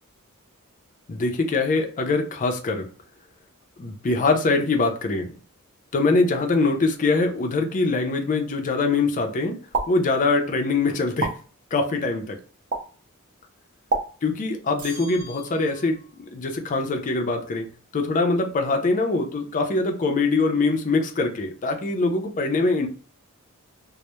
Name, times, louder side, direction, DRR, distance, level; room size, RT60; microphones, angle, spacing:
voice 1, 1.1-2.9 3.8-5.3 5.9-9.6 9.9-11.3 11.7-12.4 14.2-17.7 17.9-22.9, left 3 dB, 35° left, 0.4 m, -23 dB
sound 1, 9.7-9.9 11.2-11.3 12.7-12.8 13.9-14.0, right 3 dB, 45° right, 0.4 m, -24 dB
sound 2, 14.8-16.1, right 1 dB, 85° right, 0.8 m, -43 dB
2.1 x 2.0 x 2.8 m
head